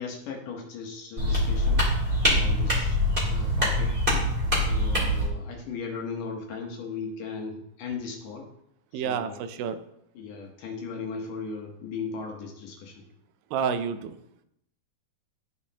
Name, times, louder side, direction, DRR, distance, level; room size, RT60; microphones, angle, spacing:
voice 1, 0.0-1.8 2.2-3.0 3.3-3.9 4.6-8.5 8.9-9.4 10.2-13.0, left 5 dB, 70° left, 1 dB, 2.4 m, -37 dB
sound 1, 1.2-5.3, left 1 dB, 15° right, 2.5 m, -24 dB
voice 2, 8.9-9.8 13.5-14.2, right 7 dB, 80° right, 10 dB, 2.2 m, -29 dB
13.0 x 5.6 x 2.8 m, 0.77 s
omnidirectional pair, 4.3 m